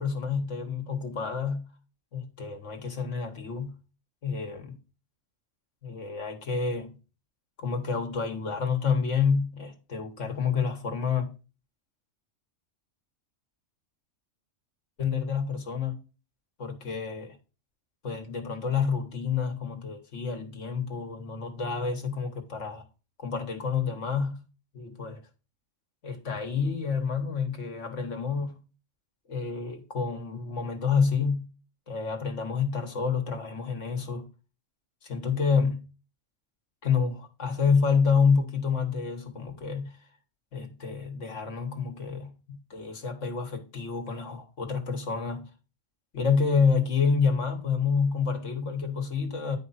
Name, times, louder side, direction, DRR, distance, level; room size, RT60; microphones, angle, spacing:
voice 1, 0.0-1.7 2.1-3.8 4.2-4.8 5.8-7.0 7.6-11.3 15.0-16.0 16.6-17.4 18.0-22.8 23.2-24.4 24.7-25.2 26.0-28.6 29.3-31.5 31.9-34.3 35.0-35.8 36.8-39.9 40.5-45.5 46.1-49.6, left 5 dB, 75° left, 1.7 m, -28 dB
9.0 x 5.0 x 4.1 m
omnidirectional pair, 1.3 m